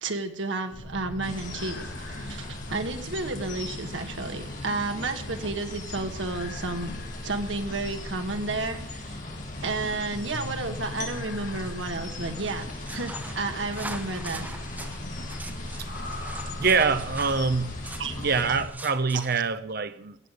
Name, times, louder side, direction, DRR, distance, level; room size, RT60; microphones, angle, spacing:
voice 1, 0.0-7.0 7.2-9.2 9.6-14.5 18.0-18.3 19.1-19.2, right 3 dB, 75° right, 1.7 m, -32 dB
sound 1, 0.7-18.7, left 1 dB, 60° left, 1.8 m, -38 dB
sound 2, 1.2-18.6, left 3 dB, 45° left, 3.9 m, -42 dB
sound 3, 12.2-19.4, right 2 dB, 10° right, 1.1 m, -43 dB
voice 2, 16.6-17.8 18.2-20.2, right 4 dB, 55° right, 1.0 m, -25 dB
17.5 x 7.0 x 8.4 m
head